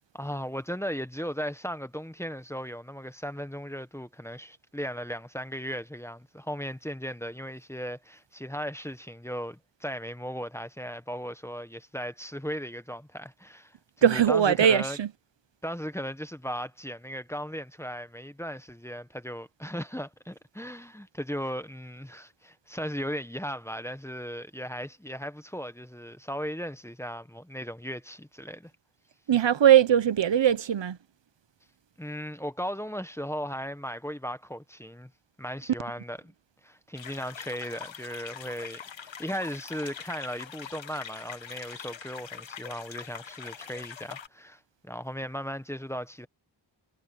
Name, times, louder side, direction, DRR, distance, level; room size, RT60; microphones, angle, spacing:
voice 1, 0.1-15.0 15.6-28.7 32.0-35.1 35.4-36.3 36.6-46.3, equal, 5° left, 1.0 m, -37 dB
voice 2, 14.0-15.1 29.3-31.0, right 9 dB, 70° right, 0.9 m, -20 dB
sound 1, 37.0-44.3, left 7 dB, 70° left, 1.3 m, -43 dB
wide cardioid pair, 90°, 47 cm